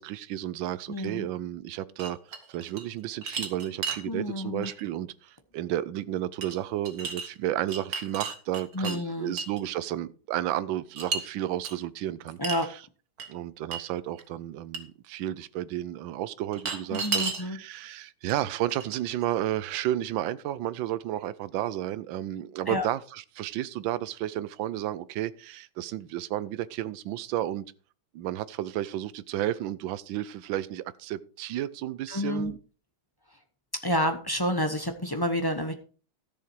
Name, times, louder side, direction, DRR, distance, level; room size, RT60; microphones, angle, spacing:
voice 1, 0.0-2.2 2.5-12.4 13.3-27.7 28.1-32.6, right 13 dB, 70° right, 1.3 m, -32 dB
voice 2, 0.9-1.3 4.1-4.7 8.7-9.3 12.4-12.7 16.9-17.6 22.7-22.9 32.1-32.5 33.8-35.7, left 1 dB, 20° left, 0.5 m, -29 dB
sound 1, 2.0-2.9 3.2-4.0 4.6-4.8 6.4-6.6 6.8-7.3 7.7-9.0 9.4-9.6 11.0-11.2 11.6-11.7 12.4-12.7 13.2-13.3 13.7-13.8 14.2-14.3 14.7-14.8 16.5-17.4 18.3-18.4 18.7-19.2, right 5 dB, 45° right, 1.9 m, -33 dB
13.5 x 7.2 x 4.6 m
omnidirectional pair, 2.3 m